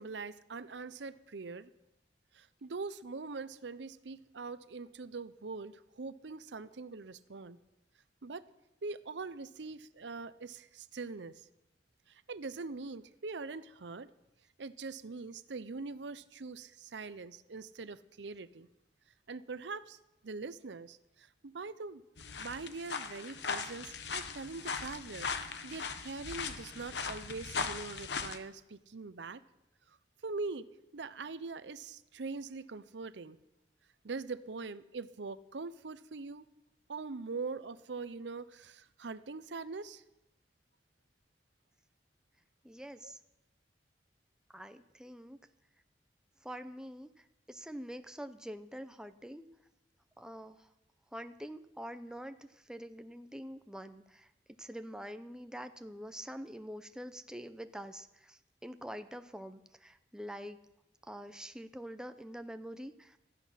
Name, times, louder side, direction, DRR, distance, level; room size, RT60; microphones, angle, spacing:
voice 1, 0.0-1.7 2.3-7.6 8.2-8.5 8.8-11.4 12.1-14.1 14.6-18.7 19.3-20.0 20.2-22.0 22.4-29.4 30.2-30.7 30.9-33.4 34.0-36.4 36.9-40.0 43.0-43.1, right 4 dB, 80° right, 14 dB, 0.7 m, -43 dB
sound 1, 22.2-28.4, left 5 dB, 70° left, 1.1 m, -39 dB
voice 2, 42.6-43.2 44.5-45.4 46.4-49.5 50.2-50.7 51.1-54.3 54.6-60.6 61.0-63.2, equal, 5° right, 9 dB, 0.7 m, -45 dB
16.5 x 13.5 x 5.7 m, 0.90 s
head